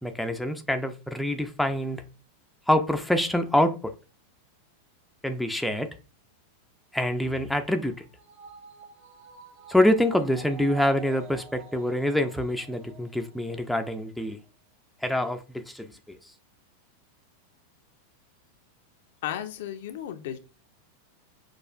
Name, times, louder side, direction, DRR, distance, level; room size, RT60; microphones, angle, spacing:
voice 1, 0.0-2.0 2.7-3.9 5.2-5.9 6.9-8.0 9.7-14.4 15.0-15.9, left 1 dB, ahead, 0.4 m, -25 dB
sound 1, 7.2-13.8 14.2-14.3, right 6 dB, 50° right, 1.7 m, -48 dB
voice 2, 19.2-20.4, left 11 dB, 55° left, 0.5 m, -34 dB
6.2 x 2.4 x 2.4 m
figure-of-eight pair, 90°, 0 cm